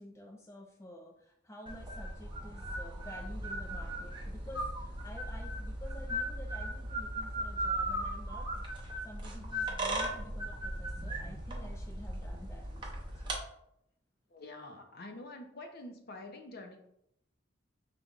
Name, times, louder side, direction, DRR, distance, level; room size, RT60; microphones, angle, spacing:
voice 1, 0.0-8.6 9.0-13.2, equal, 15° left, 2 dB, 0.3 m, -50 dB
sound 1, 1.7-13.4, right 1 dB, 25° right, 0.7 m, -37 dB
voice 2, 14.3-16.8, left 2 dB, 55° left, 4 dB, 0.6 m, -47 dB
5.1 x 3.3 x 2.4 m, 0.74 s
head